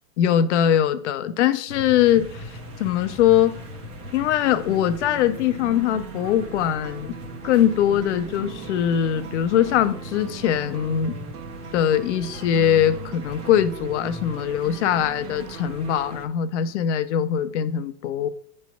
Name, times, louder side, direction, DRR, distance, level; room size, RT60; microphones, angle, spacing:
voice 1, 0.2-3.6 4.1-7.2 7.4-11.2 11.7-18.3, left 10 dB, 50° left, 0.6 m, -22 dB
sound 1, 1.7-16.3, equal, 15° right, 0.5 m, -39 dB
sound 2, 4.0-16.3, right 7 dB, 75° right, 0.8 m, -41 dB
8.0 x 3.2 x 5.7 m
hypercardioid pair, 140°, 46 cm